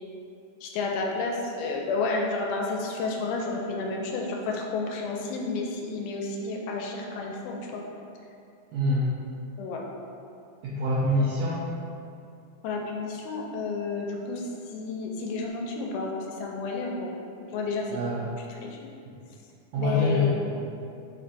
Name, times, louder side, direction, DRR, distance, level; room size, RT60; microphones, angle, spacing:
voice 1, 0.6-7.8 9.6-9.8 11.2-11.3 12.6-17.2 17.5-17.9 18.6-18.8 19.8-20.3, left 3 dB, 85° left, 0 dB, 2.0 m, -31 dB
voice 2, 8.7-9.1 10.6-11.6 17.9-18.2 19.7-20.6, left 1 dB, 90° right, -7 dB, 1.5 m, -25 dB
4.9 x 4.0 x 2.5 m, 2.6 s
omnidirectional pair, 3.5 m